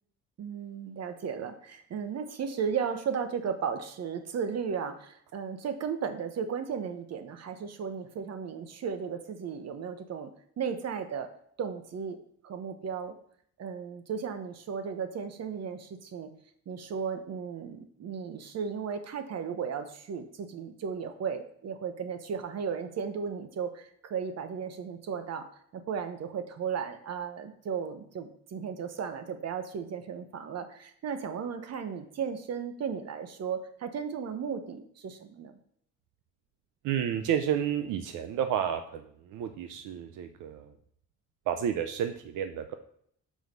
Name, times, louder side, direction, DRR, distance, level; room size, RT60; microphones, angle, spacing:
voice 1, 0.4-10.3 10.6-11.3 11.6-12.2 12.4-13.1 13.6-16.3 16.7-25.5 25.7-35.5, right 6 dB, 55° right, 9 dB, 1.0 m, -35 dB
voice 2, 36.8-39.0 39.3-40.7 41.5-42.7, right 9 dB, 85° right, 8 dB, 0.6 m, -31 dB
6.3 x 4.6 x 5.3 m, 0.66 s
cardioid pair, 90°, 30 cm